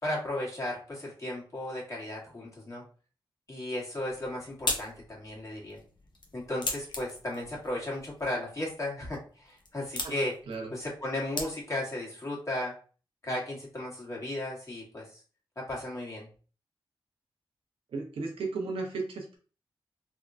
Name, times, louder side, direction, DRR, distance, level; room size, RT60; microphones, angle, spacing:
voice 1, 0.0-2.8 3.5-5.8 6.3-10.3 10.7-12.7 13.2-15.2 15.5-16.3, left 1 dB, 35° left, -3 dB, 1.6 m, -35 dB
sound 1, 4.0-12.0, left 2 dB, 55° left, 0.7 m, -40 dB
voice 2, 17.9-19.4, right 3 dB, 85° right, 1 dB, 0.7 m, -35 dB
3.5 x 2.2 x 2.5 m, 0.39 s
cardioid pair, 55°, 9 cm